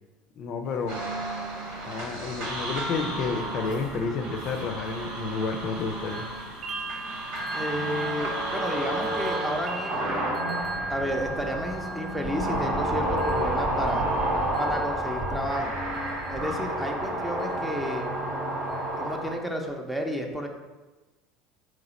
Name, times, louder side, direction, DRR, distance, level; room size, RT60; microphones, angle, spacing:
voice 1, 0.4-1.0 1.9-6.3, left 4 dB, 50° left, 5 dB, 0.4 m, -30 dB
sound 1, 0.6-9.6, right 1 dB, 90° right, 0.9 m, -49 dB
sound 2, 0.9-19.3, right 1 dB, 60° right, 1.5 m, -31 dB
sound 3, 2.8-5.8 6.1-19.4, right 2 dB, 35° right, 0.9 m, -40 dB
voice 2, 7.5-10.2 10.9-14.1 14.6-15.8 16.3-18.1 19.0-20.5, equal, 5° right, 3 dB, 0.7 m, -32 dB
3.9 x 3.1 x 4.0 m, 1.2 s
hypercardioid pair, 75°, 0 cm